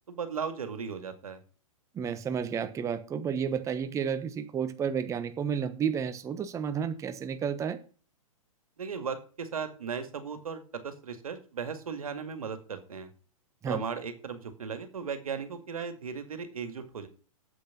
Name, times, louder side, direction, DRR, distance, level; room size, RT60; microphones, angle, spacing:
voice 1, 0.1-1.4 8.8-13.1 13.7-17.1, right 6 dB, 75° right, 9 dB, 2.1 m, -36 dB
voice 2, 1.9-7.8 13.6-13.8, right 7 dB, 15° right, 10 dB, 1.0 m, -31 dB
8.6 x 8.0 x 6.0 m, 0.39 s
hypercardioid pair, 120°, 18 cm